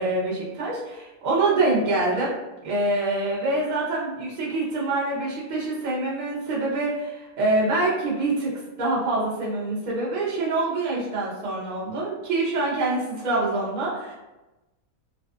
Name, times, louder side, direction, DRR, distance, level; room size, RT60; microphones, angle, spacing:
voice 1, 0.0-2.3 2.6-8.5 8.8-14.1, right 2 dB, 45° right, -6 dB, 0.6 m, -25 dB
2.6 x 2.3 x 2.3 m, 1.0 s
omnidirectional pair, 1.6 m